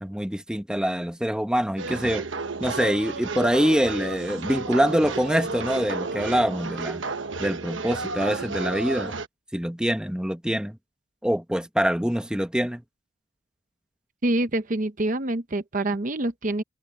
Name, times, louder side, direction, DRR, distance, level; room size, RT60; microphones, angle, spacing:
voice 1, 0.0-2.2 2.6-7.0 7.4-9.1 9.5-10.8 11.2-12.8, equal, 5° right, 1.1 m, -25 dB
sound 1, 1.8-9.3, right 4 dB, 70° right, 1.1 m, -32 dB
voice 2, 14.2-16.6, right 1 dB, 40° right, 0.9 m, -26 dB
head